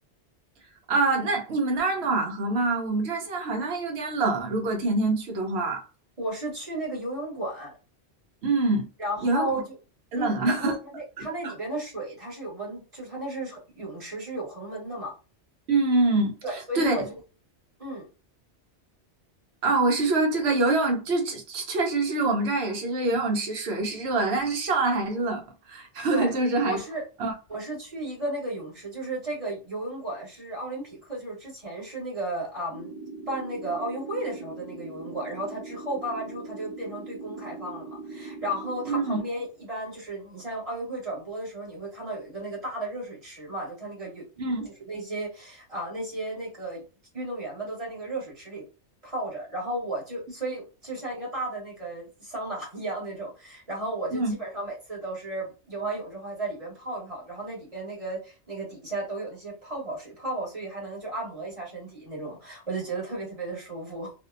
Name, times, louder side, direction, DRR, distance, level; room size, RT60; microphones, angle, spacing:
voice 1, 0.9-5.8 8.4-8.9 9.2-9.5 10.1-10.7 11.2-11.5 15.7-16.3 16.7-16.9 19.6-25.4 25.7-26.8 27.2-27.3 38.9-39.2 44.4-44.7 54.1-54.3, right 3 dB, 70° right, 0.9 m, -25 dB
voice 2, 6.2-7.7 9.0-9.8 10.2-15.1 16.4-17.2 17.8-18.0 26.1-26.4 26.6-27.0 27.5-32.9 33.3-44.4 44.9-46.8 47.1-48.6 49.0-64.1, right 1 dB, 30° right, 1.3 m, -34 dB
sound 1, 32.7-39.2, right 3 dB, 5° right, 0.6 m, -41 dB
2.6 x 2.1 x 2.4 m
omnidirectional pair, 1.2 m